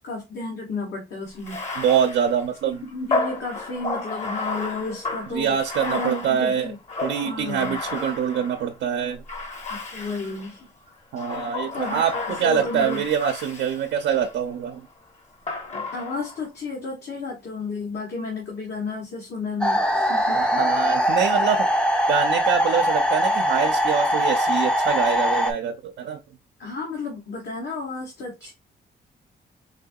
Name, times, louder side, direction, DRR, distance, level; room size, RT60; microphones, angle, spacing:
voice 1, 0.0-1.6 2.9-5.6 5.9-6.8 7.2-7.8 9.7-10.7 11.7-13.0 15.9-20.4 26.6-28.5, left 3 dB, 70° left, 1.3 m, -32 dB
Bathtub (filling or washing), 1.4-8.7 9.3-10.6 11.1-14.3 15.5-16.4, left 3 dB, 40° left, 1.1 m, -32 dB
voice 2, 1.8-2.8 5.3-6.7 7.0-9.2 11.1-14.9 20.3-21.7 22.1-26.2, right 8 dB, 90° right, 0.6 m, -25 dB
sound 1, 19.6-25.5, equal, 5° left, 0.6 m, -22 dB
4.3 x 2.7 x 2.2 m
cardioid pair, 105°, 19 cm